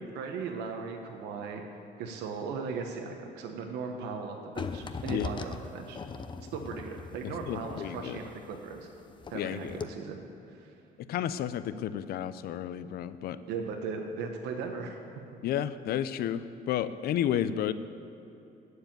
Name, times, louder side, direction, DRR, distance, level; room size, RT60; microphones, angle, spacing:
voice 1, 0.1-1.6 2.0-6.0 6.5-8.9 9.3-10.7 13.5-15.0, right 5 dB, 85° right, 3 dB, 1.1 m, -38 dB
sound 1, 4.6-9.4 9.7-9.8, left 5 dB, 30° left, 0.6 m, -40 dB
voice 2, 7.2-8.2 9.3-9.8 11.0-13.4 15.4-17.7, left 10 dB, 65° left, 14 dB, 0.6 m, -32 dB
14.5 x 4.9 x 8.9 m, 2.9 s
cardioid pair, 110°, 17 cm